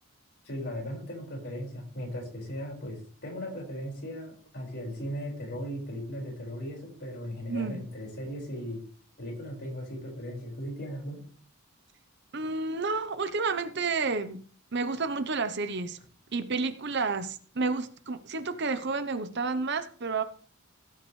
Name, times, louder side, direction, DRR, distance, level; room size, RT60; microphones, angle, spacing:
voice 1, 0.4-8.8 9.2-11.2, equal, 50° left, 5.1 m, -37 dB
voice 2, 12.3-14.5 14.7-16.0 16.3-20.2, right 4 dB, 50° right, 0.8 m, -30 dB
16.5 x 9.4 x 3.2 m
head